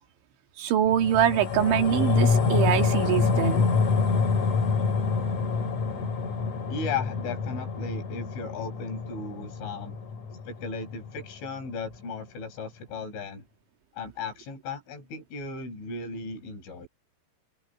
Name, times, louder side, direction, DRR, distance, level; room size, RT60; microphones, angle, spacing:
voice 1, 0.6-3.7, right 10 dB, 70° right, 4.3 m, -24 dB
sound 1, 0.9-11.5 11.8-11.9, left 5 dB, 40° left, 3.8 m, -26 dB
voice 2, 6.7-9.9 10.3-13.4 13.9-16.9, left 4 dB, 70° left, 9.3 m, -36 dB
omnidirectional pair, 5.7 m